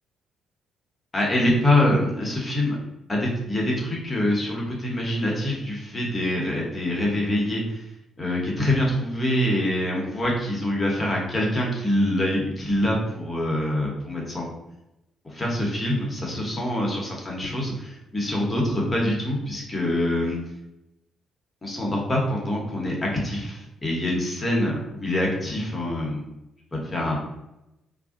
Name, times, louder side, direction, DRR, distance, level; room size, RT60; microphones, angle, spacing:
voice 1, 1.1-2.8 3.1-7.8 8.2-14.5 15.2-20.4 21.6-26.2 26.7-27.2, left 1 dB, 25° left, -2 dB, 1.0 m, -25 dB
2.5 x 2.2 x 3.7 m, 0.89 s
cardioid pair, 90°, 0 cm